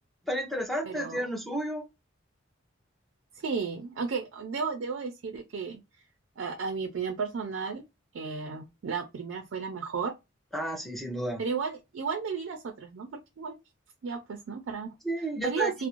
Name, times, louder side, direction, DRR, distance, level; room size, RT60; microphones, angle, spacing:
voice 1, 0.3-1.8 10.5-11.4 15.0-15.7, equal, ahead, 0.6 m, -32 dB
voice 2, 0.9-1.3 3.3-5.8 6.4-7.8 8.1-10.1 11.4-13.6 14.0-14.9 15.4-15.9, right 5 dB, 75° right, 0.4 m, -33 dB
2.5 x 2.0 x 2.9 m
head